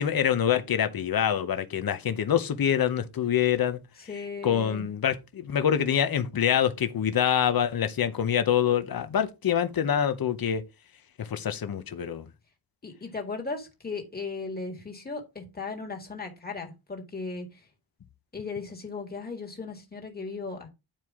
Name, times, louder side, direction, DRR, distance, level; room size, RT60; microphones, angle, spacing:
voice 1, 0.0-3.8 4.4-10.6 11.2-12.3, left 9 dB, 45° left, 0.8 m, -25 dB
voice 2, 4.1-4.8 12.8-17.6 18.3-20.7, left 4 dB, 20° left, 1.8 m, -36 dB
10.5 x 4.7 x 3.6 m
wide cardioid pair, 170°, 49 cm